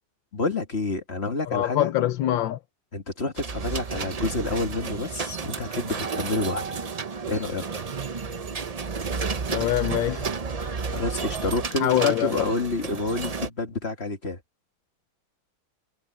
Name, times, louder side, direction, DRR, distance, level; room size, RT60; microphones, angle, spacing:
voice 1, 0.3-1.9 2.9-6.8 7.3-7.8 10.9-14.4, left 3 dB, 35° left, 1.8 m, -29 dB
voice 2, 1.5-2.6 9.5-10.3 11.8-12.4, left 13 dB, 90° left, 1.6 m, -24 dB
sound 1, 3.4-13.5, right 5 dB, 65° right, 0.3 m, -32 dB
omnidirectional pair, 2.0 m